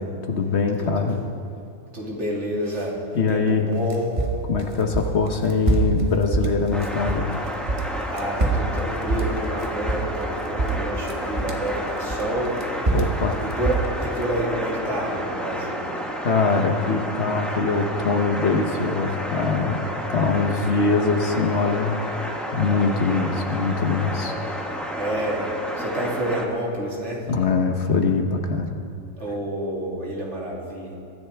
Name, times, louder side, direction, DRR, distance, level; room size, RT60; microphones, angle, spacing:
voice 1, 0.3-1.2 3.1-3.7 4.5-7.3 12.9-13.4 16.2-19.8 20.1-21.9 22.5-24.3 27.3-28.8, left 4 dB, 60° left, 4 dB, 1.2 m, -22 dB
voice 2, 1.9-3.0 3.3-4.2 8.1-12.6 13.4-15.9 25.0-25.5 25.8-27.2 29.2-30.9, right 1 dB, 60° right, -3 dB, 2.8 m, -29 dB
sound 1, 3.7-7.3 7.6-10.3 10.6-11.7 12.1-14.2, right 3 dB, 25° right, 1.2 m, -24 dB
sound 2, 6.7-26.5, equal, ahead, 1.3 m, -31 dB
22.5 x 14.0 x 3.4 m, 2.5 s
omnidirectional pair, 1.3 m